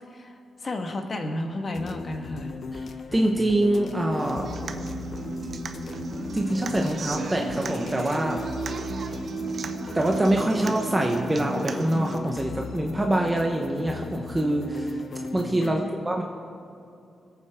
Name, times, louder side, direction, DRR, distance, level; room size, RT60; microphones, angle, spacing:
voice 1, 0.1-2.5 15.6-16.0, left 1 dB, 45° left, 4 dB, 1.5 m, -32 dB
sound 1, 1.7-15.7, left 4 dB, 60° left, 0.8 m, -37 dB
voice 2, 3.1-4.5 6.3-8.4 9.9-15.0 15.3-16.2, right 1 dB, 15° right, 1 dB, 1.1 m, -25 dB
Human voice / Acoustic guitar, 4.2-12.2, right 4 dB, 55° right, 0.8 m, -34 dB
21.5 x 8.7 x 3.7 m, 2.7 s
cardioid pair, 90°, 0 cm